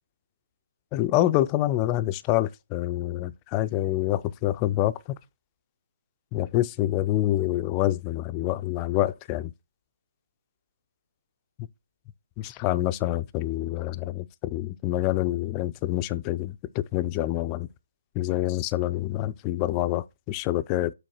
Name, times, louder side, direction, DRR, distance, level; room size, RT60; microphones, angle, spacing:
voice 1, 0.9-4.9 6.3-9.5 12.4-17.7 18.2-20.9, left 15 dB, 20° left, 0.3 m, -26 dB
6.2 x 4.0 x 6.1 m
figure-of-eight pair, 145°, 0 cm